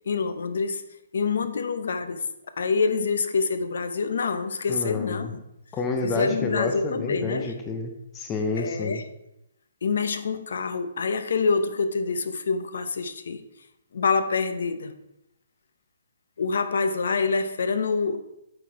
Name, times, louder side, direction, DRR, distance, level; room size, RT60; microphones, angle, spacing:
voice 1, 0.1-0.8 1.1-2.2 2.6-5.4 6.0-7.5 8.6-9.0 9.8-13.5 13.9-14.9 16.4-18.2, left 4 dB, 60° left, 10 dB, 0.7 m, -26 dB
voice 2, 4.7-5.3 5.7-9.0, left 3 dB, 10° left, 3 dB, 0.5 m, -29 dB
8.7 x 4.4 x 4.6 m, 0.86 s
hypercardioid pair, 180°, 0 cm